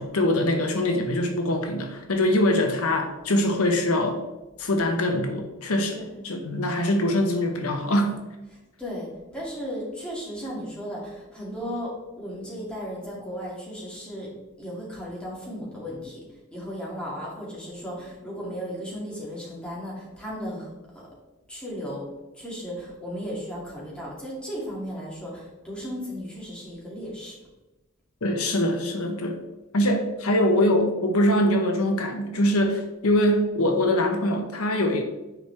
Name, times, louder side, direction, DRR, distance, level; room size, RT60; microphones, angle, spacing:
voice 1, 0.0-4.2 4.6-6.0 6.2-8.1 28.2-29.4 29.7-35.0, left 1 dB, 80° left, 4 dB, 1.0 m, -23 dB
voice 2, 5.9-6.3 8.5-14.3 14.6-16.2 16.5-20.7 21.5-22.0 22.3-27.4, equal, 5° left, -6 dB, 2.5 m, -35 dB
10.0 x 4.9 x 3.4 m, 1.1 s
head